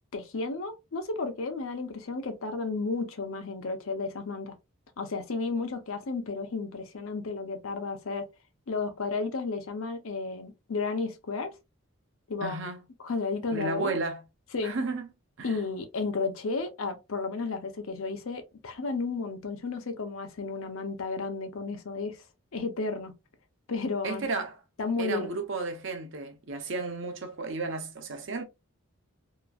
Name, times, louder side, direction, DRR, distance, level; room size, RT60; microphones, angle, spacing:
voice 1, 0.1-4.5 5.0-8.3 8.7-11.5 12.3-12.6 13.0-13.9 14.5-14.7 15.4-22.2 22.5-23.1 23.7-24.3 24.8-25.4, left 4 dB, 75° left, 0.6 m, -33 dB
voice 2, 12.4-12.8 13.5-14.2 14.6-15.1 15.4-15.6 24.0-24.6 25.0-28.4, right 3 dB, 60° right, 0.7 m, -33 dB
2.9 x 2.5 x 2.2 m
head